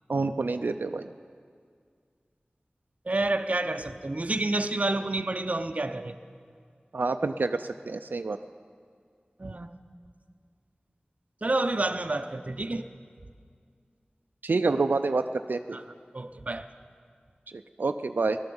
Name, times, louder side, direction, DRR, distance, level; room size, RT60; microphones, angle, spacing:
voice 1, 0.1-1.1 6.9-8.4 14.4-15.8 17.8-18.4, right 3 dB, 90° right, 0.4 m, -27 dB
voice 2, 3.1-6.1 9.4-9.7 11.4-12.9 15.7-15.8 16.1-16.7, right 2 dB, 45° right, 0.7 m, -29 dB
17.0 x 12.0 x 7.0 m
wide cardioid pair, 55°, 3 cm